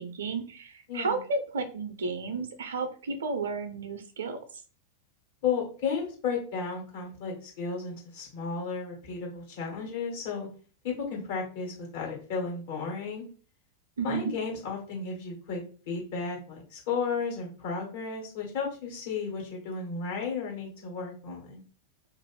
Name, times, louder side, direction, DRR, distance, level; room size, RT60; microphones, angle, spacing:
voice 1, 0.0-4.4 14.0-14.3, right 4 dB, 65° right, 8 dB, 0.5 m, -32 dB
voice 2, 0.9-1.2 5.4-10.5 10.8-13.3 14.0-15.6 15.9-21.6, left 5 dB, 55° left, -1 dB, 1.3 m, -33 dB
2.5 x 2.4 x 3.1 m, 0.40 s
figure-of-eight pair, 90°, 0 cm